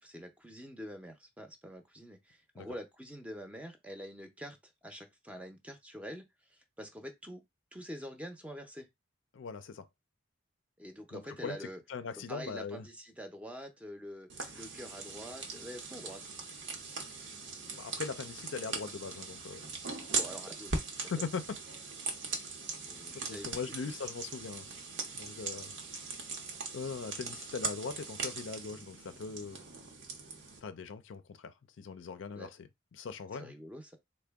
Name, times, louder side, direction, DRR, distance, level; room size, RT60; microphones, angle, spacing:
voice 1, 0.0-7.4 7.7-8.9 10.8-11.8 12.2-16.2 20.2-20.8 22.9-23.9 32.3-32.5 33.4-34.0, equal, 5° right, 0.5 m, -46 dB
voice 2, 9.3-9.9 11.1-11.6 11.9-12.9 17.7-19.7 21.0-21.6 23.1-24.7 25.1-25.7 26.7-29.6 30.6-33.5, left 5 dB, 70° left, 0.4 m, -40 dB
sound 1, 14.3-30.6, right 4 dB, 65° right, 0.8 m, -40 dB
3.6 x 2.1 x 3.4 m
head